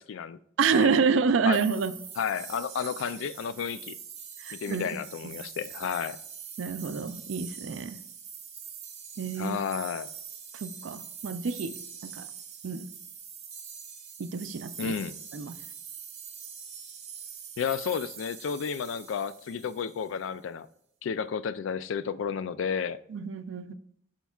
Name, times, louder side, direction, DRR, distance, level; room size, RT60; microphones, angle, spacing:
voice 1, 0.0-0.4 0.7-0.9 1.5-1.6 2.2-4.0 4.5-6.2 9.4-10.1 14.8-15.2 17.6-20.7 21.0-23.0, left 7 dB, 70° left, 0.3 m, -32 dB
voice 2, 0.6-1.9 4.4-4.9 5.2-5.3 6.6-8.0 9.2-9.6 10.5-12.3 12.6-12.9 14.2-14.9 15.3-15.6 23.1-23.7, right 5 dB, 70° right, 0.4 m, -28 dB
sound 1, 1.5-20.2, right 7 dB, 30° right, 1.1 m, -44 dB
11.5 x 4.5 x 2.3 m
head